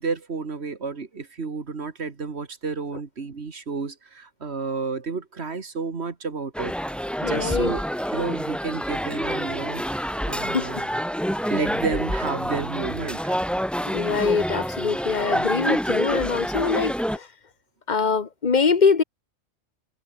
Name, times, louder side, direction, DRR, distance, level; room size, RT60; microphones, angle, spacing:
voice 1, 0.0-6.7 7.2-7.8 8.1-10.9 11.5-13.4, right 4 dB, 55° right, 2.1 m, -31 dB
sound 1, 6.5-17.2, equal, ahead, 4.2 m, -27 dB
voice 2, 7.2-7.7 10.5-10.7 13.9-17.3 17.9-19.0, left 5 dB, 35° left, 1.2 m, -23 dB
open air
omnidirectional pair, 1.3 m